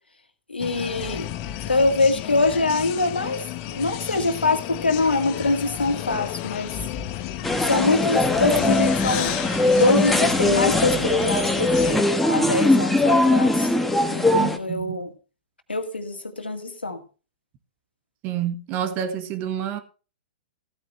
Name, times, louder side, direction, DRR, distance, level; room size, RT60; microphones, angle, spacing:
voice 1, 0.5-1.3 1.7-6.8 7.7-9.3 9.8-13.7 14.1-15.1 15.7-17.0, left 3 dB, 90° left, 2.2 m, -24 dB
sound 1, 0.6-12.0, left 12 dB, 40° left, 1.3 m, -32 dB
sound 2, 7.4-14.6, left 2 dB, 5° left, 1.5 m, -20 dB
voice 2, 14.3-15.1 18.2-19.8, right 10 dB, 35° right, 1.7 m, -28 dB
15.5 x 9.4 x 3.3 m
figure-of-eight pair, 115°, 5 cm